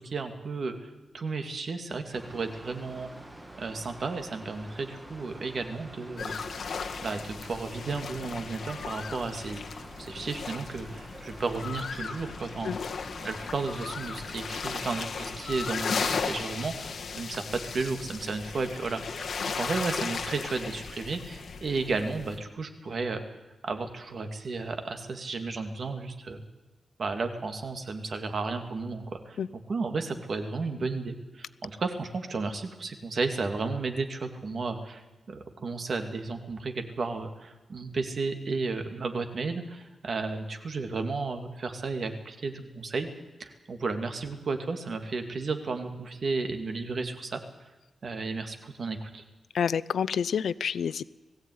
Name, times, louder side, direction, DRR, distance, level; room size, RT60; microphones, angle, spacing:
voice 1, 0.0-3.1 3.6-6.4 7.0-9.6 10.0-19.3 19.6-23.2 23.6-26.4 27.0-29.4 29.7-43.1 43.4-47.4 48.0-49.2, right 3 dB, 50° right, 6 dB, 2.5 m, -33 dB
Mechanical fan, 2.1-16.3, right 1 dB, 15° right, 2.6 m, -47 dB
sound 1, 6.2-22.4, left 5 dB, 65° left, 1.8 m, -36 dB
voice 2, 49.5-51.0, left 7 dB, 80° left, 19 dB, 0.6 m, -28 dB
20.5 x 15.5 x 9.5 m, 1.1 s
wide cardioid pair, 135°, 0 cm